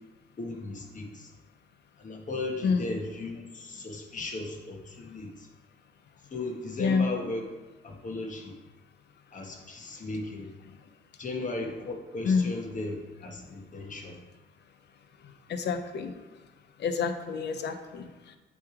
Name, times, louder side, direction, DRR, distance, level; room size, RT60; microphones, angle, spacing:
voice 1, 0.4-1.3 2.0-5.5 6.3-7.5 7.8-8.5 9.3-10.5 11.2-14.2, left 2 dB, 40° left, 2 dB, 1.3 m, -36 dB
voice 2, 15.5-16.1 16.8-18.4, left 5 dB, 60° left, 8 dB, 0.7 m, -28 dB
8.2 x 3.3 x 4.8 m, 1.2 s
cardioid pair, 90°, 20 cm